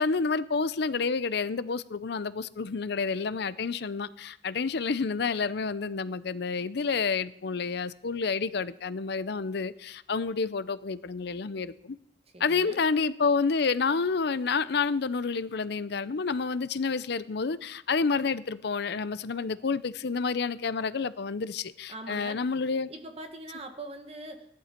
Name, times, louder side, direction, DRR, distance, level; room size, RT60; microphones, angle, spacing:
voice 1, 0.0-12.0 12.4-22.9, left 4 dB, 70° left, 0.6 m, -29 dB
voice 2, 12.3-12.8 21.9-22.4 22.9-24.5, right 2 dB, 35° right, 1.6 m, -42 dB
15.0 x 11.0 x 4.5 m
head